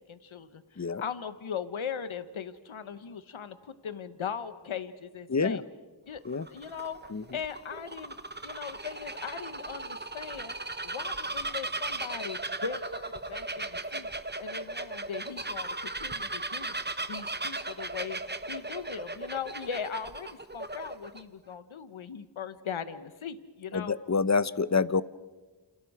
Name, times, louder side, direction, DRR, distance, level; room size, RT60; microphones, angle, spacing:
voice 1, 0.1-5.6 6.1-6.2 6.5-7.0 7.3-8.2 8.4-10.5 10.8-14.1 14.4-16.8 17.1-18.2 18.5-24.0, left 7 dB, 90° left, 12 dB, 1.1 m, -39 dB
voice 2, 5.3-5.6 6.3-6.5 7.1-7.2 23.7-25.0, left 4 dB, 35° left, 16 dB, 0.9 m, -27 dB
Bird vocalization bird call bird song, 6.2-21.2, right 2 dB, 20° right, 1.2 m, -37 dB
28.5 x 28.0 x 4.9 m, 1.3 s
cardioid pair, 40°, 47 cm